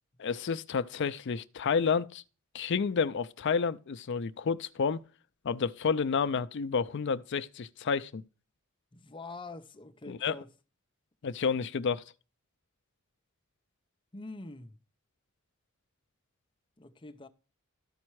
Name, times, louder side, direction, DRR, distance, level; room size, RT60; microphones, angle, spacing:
voice 1, 0.2-2.2 2.5-5.0 5.4-8.2 10.1-10.4 11.2-12.0, left 5 dB, 60° left, 0.4 m, -30 dB
voice 2, 8.9-10.5 14.1-14.8 16.8-17.3, left 3 dB, 25° left, 0.7 m, -45 dB
13.0 x 4.3 x 4.7 m
head